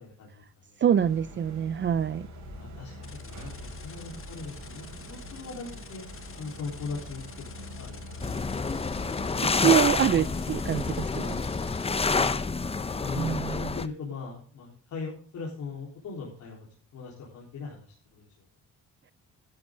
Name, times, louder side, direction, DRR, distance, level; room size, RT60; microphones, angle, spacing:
voice 1, 0.0-0.8 2.6-6.0 6.4-7.2 7.5-8.3 12.1-12.5 13.0-16.7 16.9-18.3, left 4 dB, 70° left, -3 dB, 3.9 m, -40 dB
voice 2, 0.8-2.3 9.4-11.4 13.2-13.8, right 9 dB, 40° right, 15 dB, 0.5 m, -25 dB
sound 1, 0.9-10.4, equal, 75° right, 4.9 m, -44 dB
sound 2, 3.0-12.0, left 7 dB, 45° left, 1.5 m, -49 dB
sound 3, 8.2-13.9, left 4 dB, 20° left, 0.7 m, -28 dB
11.5 x 11.5 x 3.7 m, 0.44 s
cardioid pair, 90°, 30 cm